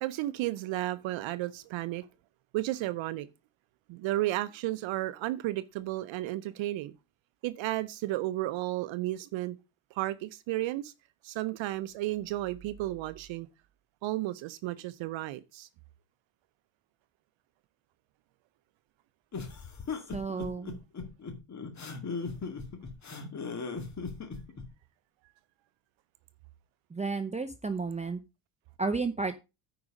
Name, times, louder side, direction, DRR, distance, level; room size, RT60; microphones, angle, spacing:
voice 1, 0.0-2.1 2.5-3.3 3.9-6.9 7.4-9.6 9.9-10.9 11.2-13.5 14.0-15.7, right 16 dB, 65° right, 0.7 m, -33 dB
sound 1, 19.3-24.7, left 4 dB, 35° left, 2.2 m, -38 dB
voice 2, 20.1-20.8 26.9-28.2 28.8-29.4, right 4 dB, 15° right, 0.7 m, -32 dB
9.5 x 5.0 x 5.2 m
supercardioid pair, 80°, 50 cm